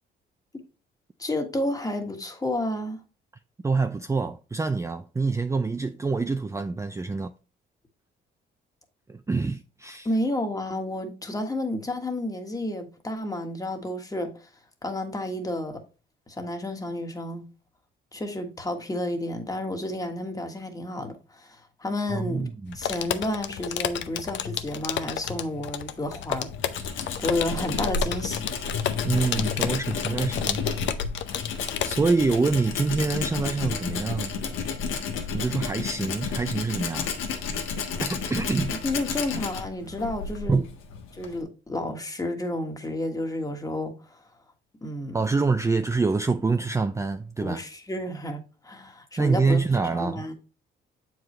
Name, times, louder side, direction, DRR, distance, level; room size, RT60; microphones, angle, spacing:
voice 1, 1.2-3.0 10.0-14.3 14.8-15.8 16.3-17.5 18.1-26.5 27.2-28.5 38.8-40.6 41.1-44.2 44.8-45.2 47.4-50.3, left 1 dB, 20° left, 1.5 m, -31 dB
voice 2, 3.6-7.3 9.1-10.1 22.1-22.8 29.0-30.6 31.8-34.4 35.3-37.1 38.0-38.8 40.5-40.6 45.1-47.6 49.2-50.2, right 4 dB, 15° right, 0.4 m, -26 dB
sound 1, 22.7-32.1, left 9 dB, 70° left, 0.7 m, -31 dB
Tools, 26.0-41.4, left 5 dB, 90° left, 1.3 m, -32 dB
7.5 x 4.7 x 3.2 m
cardioid pair, 90°, 20 cm